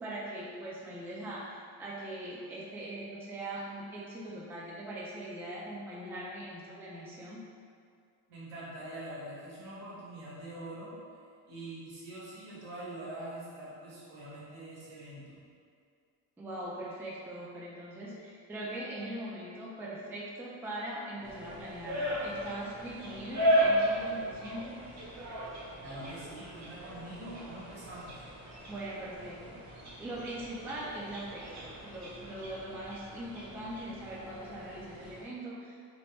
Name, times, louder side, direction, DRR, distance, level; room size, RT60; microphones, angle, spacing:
voice 1, 0.0-7.4 16.4-24.9 28.7-29.6 30.0-35.8, right 1 dB, 5° right, -5 dB, 0.3 m, -41 dB
voice 2, 8.3-10.9 11.5-15.4 25.8-28.2, right 1 dB, 80° right, -8 dB, 1.2 m, -44 dB
sound 1, 21.2-35.2, equal, 35° right, 0.7 m, -35 dB
2.8 x 2.2 x 3.1 m, 2.2 s
cardioid pair, 90°, 47 cm